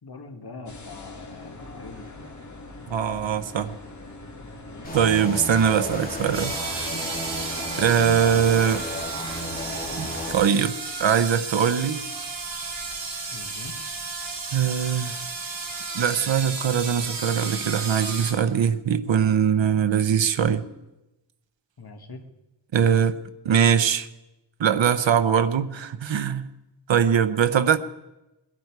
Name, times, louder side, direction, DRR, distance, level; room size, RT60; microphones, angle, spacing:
voice 1, 0.0-2.3 13.3-13.8 21.8-22.2, left 3 dB, 60° left, 4 dB, 1.9 m, -42 dB
sound 1, 0.6-10.4, left 2 dB, 40° left, 2.0 m, -42 dB
voice 2, 2.9-3.8 4.9-6.5 7.8-8.8 10.0-10.7 11.0-12.0 14.5-15.2 15.9-20.7 22.7-23.2 23.4-24.1 24.6-26.5 26.9-27.8, right 8 dB, 90° right, 12 dB, 0.7 m, -22 dB
sound 2, 4.8-10.4, left 1 dB, 20° left, 3.2 m, -33 dB
sound 3, 6.3-18.3, right 4 dB, 70° right, 3.8 m, -33 dB
21.0 x 11.0 x 4.8 m, 1.0 s
wide cardioid pair, 80°, 44 cm